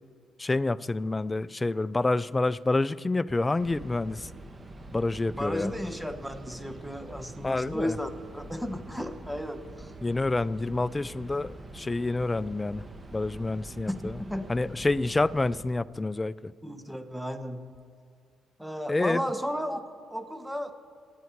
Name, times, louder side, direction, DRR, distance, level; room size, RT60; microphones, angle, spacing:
voice 1, 0.4-4.3 4.9-5.7 7.4-8.0 10.0-12.8 13.1-14.2 14.5-16.5 18.9-19.2, left 2 dB, 20° left, 17 dB, 0.4 m, -28 dB
sound 1, 3.6-15.6, right 2 dB, 25° right, 1.5 m, -45 dB
voice 2, 5.3-9.9 13.9-14.5 16.6-17.7 18.6-19.8 20.1-20.7, equal, 5° right, 8 dB, 1.2 m, -34 dB
26.5 x 9.5 x 4.7 m, 2.2 s
cardioid pair, 90°, 0 cm